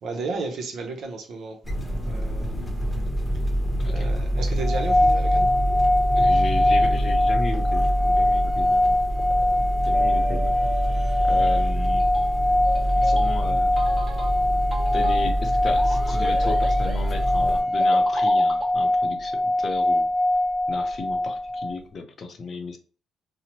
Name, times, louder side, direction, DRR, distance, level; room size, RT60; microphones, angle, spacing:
voice 1, 0.0-1.6 2.1-2.7 3.8-5.5, right 3 dB, 70° right, 0.7 m, -33 dB
sound 1, 1.6-17.6, equal, 15° left, 0.8 m, -26 dB
voice 2, 3.8-4.1 6.2-9.0 9.9-10.6 11.2-12.1 13.0-13.8 14.9-20.1 20.7-22.8, left 4 dB, 50° left, 0.6 m, -35 dB
sound 2, 4.6-21.8, left 1 dB, 10° right, 0.4 m, -22 dB
sound 3, 7.5-18.7, right 1 dB, 30° right, 1.0 m, -38 dB
2.8 x 2.0 x 2.8 m
cardioid pair, 90°, 0 cm